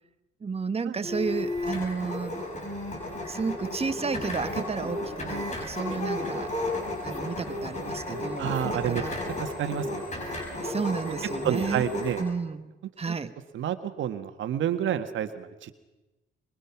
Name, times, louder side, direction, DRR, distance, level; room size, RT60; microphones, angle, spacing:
voice 1, 0.4-2.4 3.3-6.5 7.0-8.5 8.8-9.1 10.6-11.8 12.2-12.7 13.0-13.3, right 5 dB, 30° right, 11 dB, 1.5 m, -32 dB
sound 1, 1.0-12.2, left 1 dB, 35° left, 6.9 m, -33 dB
voice 2, 8.4-10.6 11.4-12.2 13.1-13.2 13.5-15.7, right 10 dB, 75° right, 8 dB, 1.7 m, -30 dB
24.5 x 22.0 x 6.0 m, 1.1 s
cardioid pair, 90°, 20 cm